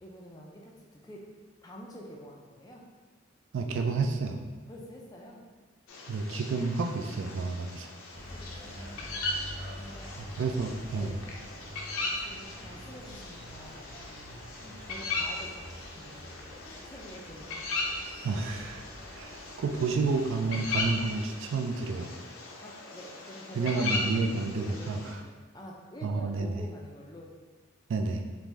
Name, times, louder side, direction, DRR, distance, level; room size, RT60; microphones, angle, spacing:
voice 1, 0.0-2.9 4.7-5.5 7.1-7.2 8.1-9.2 9.8-10.2 10.9-11.3 12.2-13.9 14.6-16.2 16.6-17.7 20.5-20.7 22.6-27.3, equal, 20° left, -2 dB, 0.3 m, -47 dB
voice 2, 3.5-4.4 6.1-7.9 10.2-11.1 18.2-18.9 19.1-22.1 23.6-25.2 26.0-26.7 27.9-28.2, right 4 dB, 65° right, 5 dB, 0.3 m, -30 dB
sound 1, 5.9-25.1, left 3 dB, 85° left, 0.5 m, -38 dB
sound 2, 8.1-21.2, equal, 25° right, 1.0 m, -47 dB
3.4 x 2.5 x 3.1 m, 1.4 s
head